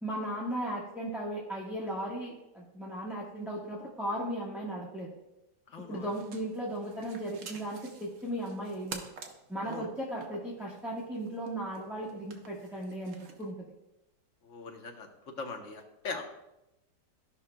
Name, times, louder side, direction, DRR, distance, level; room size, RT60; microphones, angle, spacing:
voice 1, 0.0-5.1 5.8-9.0 9.5-13.5, right 1 dB, ahead, -5 dB, 1.1 m, -36 dB
voice 2, 5.7-6.1 9.6-9.9 14.4-15.1 15.4-16.2, left 4 dB, 55° left, 3 dB, 1.1 m, -40 dB
sound 1, 6.0-13.5, right 5 dB, 60° right, 1.2 m, -50 dB
14.5 x 5.6 x 2.2 m, 0.91 s
omnidirectional pair, 1.8 m